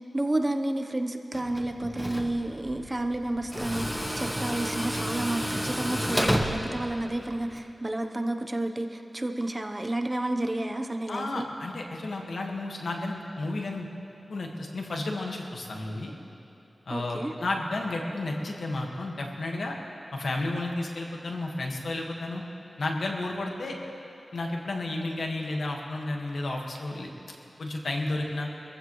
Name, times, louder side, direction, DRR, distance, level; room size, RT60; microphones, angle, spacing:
voice 1, 0.1-11.5 16.9-17.3, right 1 dB, 25° right, 5 dB, 0.9 m, -31 dB
Tools, 1.3-7.6, equal, 5° left, 1.2 m, -31 dB
voice 2, 11.1-13.9 14.3-16.1 16.9-19.7 20.1-22.4 22.8-23.7 24.3-27.1 27.6-28.5, left 2 dB, 90° left, 0 dB, 1.6 m, -32 dB
24.0 x 15.0 x 3.2 m, 2.9 s
wide cardioid pair, 80°, 0 cm